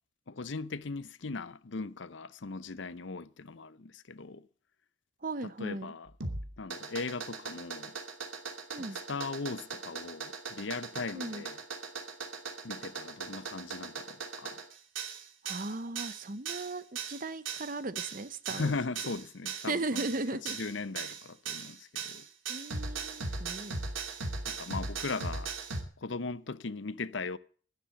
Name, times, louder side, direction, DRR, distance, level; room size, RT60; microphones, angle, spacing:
voice 1, 0.3-4.5 5.4-6.1 6.6-7.9 8.8-11.6 12.6-14.6 18.5-20.0 20.4-22.3 24.5-25.5 26.0-27.4, left 3 dB, 70° left, 0.7 m, -38 dB
voice 2, 5.2-5.9 8.7-9.0 11.1-11.4 15.5-18.7 19.0-19.1 19.7-20.6 21.0-21.1 22.5-23.8, right 2 dB, 45° right, 0.9 m, -37 dB
sound 1, 6.1-25.8, right 4 dB, 85° right, 2.8 m, -38 dB
12.5 x 10.5 x 7.8 m
head